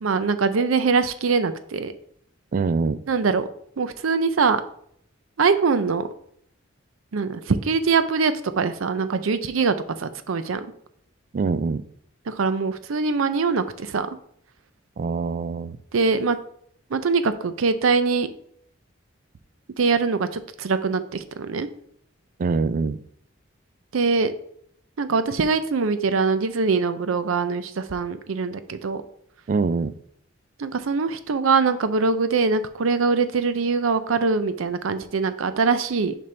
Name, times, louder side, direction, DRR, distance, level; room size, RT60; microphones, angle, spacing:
voice 1, 0.0-1.9 3.1-3.5 3.8-4.6 5.4-6.1 7.1-10.7 12.3-14.1 15.9-16.4 16.9-18.3 19.8-21.7 23.9-24.3 25.0-29.0 30.6-36.2, right 4 dB, 90° right, 11 dB, 0.5 m, -23 dB
voice 2, 2.5-3.0 11.3-11.9 15.0-15.8 22.4-23.0 29.5-29.9, right 4 dB, 40° right, 14 dB, 0.3 m, -24 dB
6.7 x 5.2 x 3.3 m, 0.67 s
head